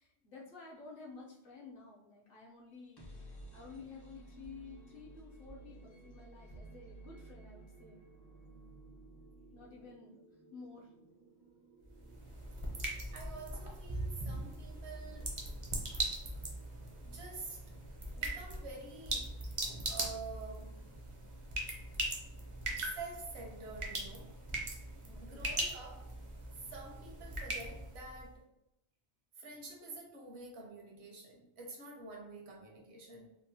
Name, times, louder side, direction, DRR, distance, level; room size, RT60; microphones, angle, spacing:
voice 1, 0.0-8.1 9.5-10.2 10.5-10.9 13.6-13.7 25.0-25.5, left 4 dB, 60° left, -3 dB, 0.8 m, -52 dB
sound 1, 2.7-16.5, right 2 dB, 35° left, 0.4 m, -56 dB
sound 2, 11.8-28.3, right 2 dB, 45° right, 0.4 m, -40 dB
voice 2, 13.1-15.3 17.0-17.8 18.1-19.4 19.8-20.8 22.8-24.4 24.7-26.1 26.7-28.5 29.4-33.4, right 3 dB, 75° right, 0 dB, 0.9 m, -48 dB
2.9 x 2.0 x 2.7 m, 0.84 s
omnidirectional pair, 1.1 m